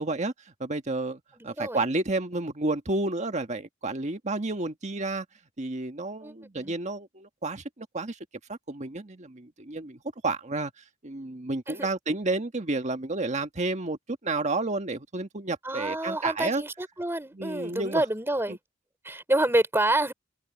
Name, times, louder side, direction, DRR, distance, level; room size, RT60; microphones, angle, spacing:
voice 1, 0.0-5.3 5.6-8.2 8.5-10.7 11.0-16.6 17.3-18.0 18.5-18.6, right 2 dB, 35° right, 1.6 m, -31 dB
voice 2, 1.4-1.8 6.2-6.7 11.7-11.9 15.6-18.6 19.0-20.1, right 1 dB, 15° right, 3.3 m, -28 dB
open air
head